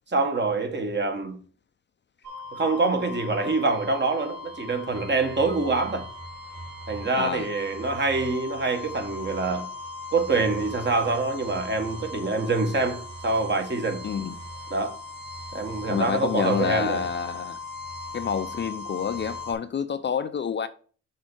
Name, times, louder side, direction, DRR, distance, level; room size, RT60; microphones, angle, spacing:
voice 1, 0.1-1.4 2.5-6.1 6.9-9.7 10.1-14.0 14.7-15.0 15.5-17.0, right 3 dB, 35° right, 1.6 m, -25 dB
sound 1, 2.2-19.5, left 2 dB, 65° right, 4.2 m, -39 dB
voice 2, 7.2-7.5 14.0-14.3 15.9-17.6 18.1-20.7, left 7 dB, 35° left, 0.6 m, -28 dB
6.3 x 4.1 x 6.2 m
cardioid pair, 90°, 30 cm